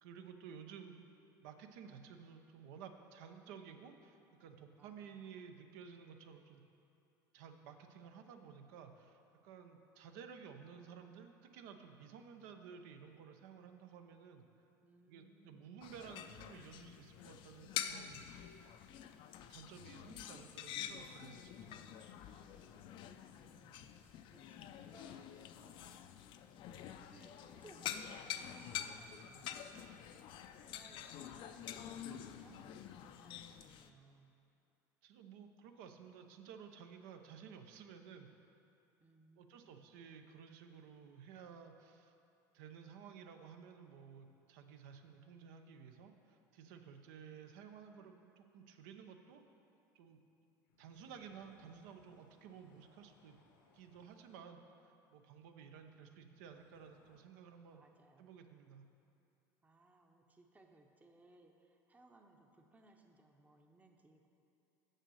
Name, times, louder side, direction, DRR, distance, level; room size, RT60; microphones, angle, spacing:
voice 1, 0.0-1.0 1.4-6.6 7.3-14.5 15.1-18.3 19.5-21.7 35.0-38.3 39.4-42.1 42.5-49.4 49.9-50.2 50.8-53.4 53.7-57.9 58.2-58.8, right 7 dB, 75° right, 6 dB, 0.7 m, -54 dB
voice 2, 4.7-5.3 14.8-15.9 22.3-25.3 25.6-26.1 26.6-34.4 39.0-39.9 55.3-56.1 57.7-58.3 59.6-64.3, right 2 dB, 15° right, 3 dB, 0.8 m, -65 dB
sound 1, 15.8-33.9, left 10 dB, 55° left, 0.4 m, -47 dB
sound 2, 50.7-54.5 56.5-57.2, left 3 dB, 85° left, 1.0 m, -70 dB
6.5 x 6.3 x 6.3 m, 2.7 s
hypercardioid pair, 90°, 10 cm